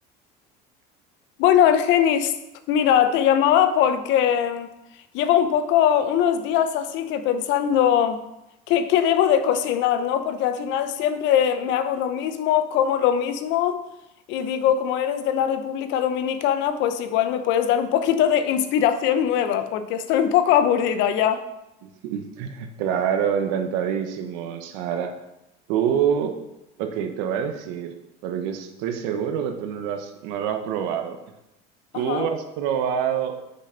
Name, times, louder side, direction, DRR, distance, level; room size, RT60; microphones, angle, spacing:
voice 1, 1.4-2.3 2.7-4.7 5.1-8.2 8.7-13.9 14.3-21.5 31.9-32.3, left 9 dB, 65° left, 10 dB, 0.8 m, -21 dB
voice 2, 21.8-25.1 25.7-26.3 26.8-27.9 28.2-31.2 31.9-33.3, right 8 dB, 75° right, 6 dB, 1.1 m, -26 dB
6.3 x 5.6 x 5.2 m, 0.91 s
supercardioid pair, 100°, 20 cm